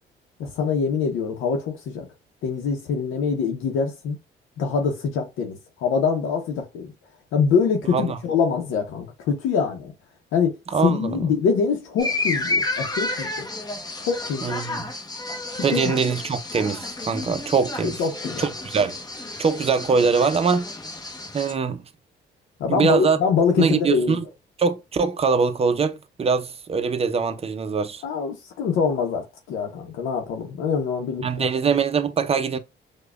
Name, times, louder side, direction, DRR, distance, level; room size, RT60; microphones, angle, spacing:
voice 1, 0.4-2.1 2.4-4.2 4.6-6.9 7.3-9.9 10.3-10.6 10.8-13.3 14.0-14.6 15.7-15.8 17.8-18.4 22.6-24.2 28.0-31.5, left 5 dB, 85° left, 0.7 m, -24 dB
voice 2, 10.7-11.3 14.4-14.9 15.6-18.0 18.4-19.0 19.4-20.7 21.3-21.8 22.7-23.2 23.6-24.2 24.6-28.0 31.2-32.6, right 5 dB, 30° right, 0.5 m, -23 dB
sound 1, 12.0-21.5, left 2 dB, 20° left, 0.9 m, -31 dB
4.8 x 2.2 x 2.2 m
cardioid pair, 90°, 20 cm